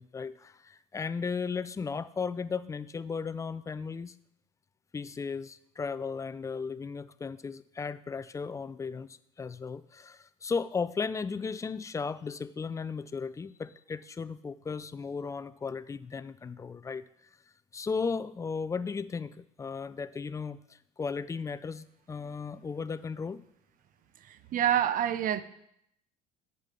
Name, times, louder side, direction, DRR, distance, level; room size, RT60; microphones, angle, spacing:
voice 1, 0.0-4.1 4.9-17.0 17.7-20.6 21.0-23.4, left 5 dB, 15° left, 16 dB, 0.4 m, -35 dB
voice 2, 24.3-25.4, right 10 dB, 45° right, 13 dB, 0.6 m, -27 dB
8.1 x 5.4 x 5.6 m, 0.74 s
supercardioid pair, 85°, 19 cm